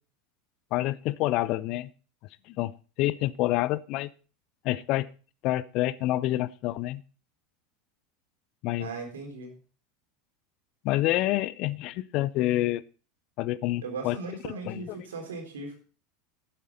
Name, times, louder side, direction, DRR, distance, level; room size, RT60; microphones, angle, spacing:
voice 1, 0.7-1.9 2.5-2.7 3.0-4.1 4.6-5.1 5.4-7.0 8.6-8.9 10.8-12.8 13.4-14.2 14.6-15.0, left 16 dB, 45° left, 19 dB, 0.5 m, -27 dB
voice 2, 8.8-9.5 13.8-15.8, right 3 dB, 65° right, 2 dB, 4.0 m, -38 dB
12.0 x 10.0 x 4.0 m, 0.37 s
figure-of-eight pair, 80°, 0 cm